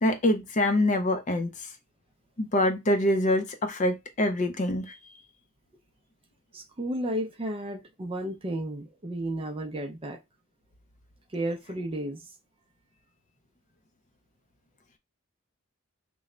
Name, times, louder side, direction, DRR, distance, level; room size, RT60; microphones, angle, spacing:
voice 1, 0.0-1.5 2.4-5.0, left 1 dB, 35° left, 0.5 m, -25 dB
voice 2, 6.5-10.2 11.3-12.2, right 1 dB, 25° right, 0.5 m, -33 dB
3.0 x 2.2 x 3.7 m
head